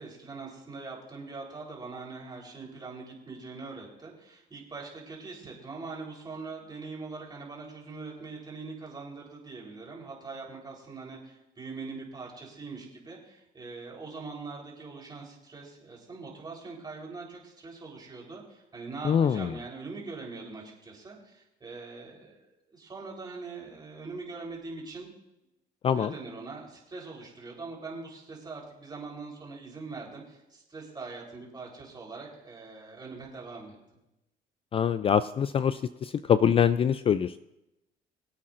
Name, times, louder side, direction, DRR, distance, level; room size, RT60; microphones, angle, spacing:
voice 1, 0.0-25.1 25.9-33.8, right 4 dB, 25° right, -2 dB, 3.9 m, -42 dB
voice 2, 19.0-19.5 25.8-26.1 34.7-37.4, left 8 dB, 35° left, 13 dB, 0.4 m, -24 dB
23.0 x 8.5 x 2.6 m, 0.91 s
cardioid pair, 110°, 17 cm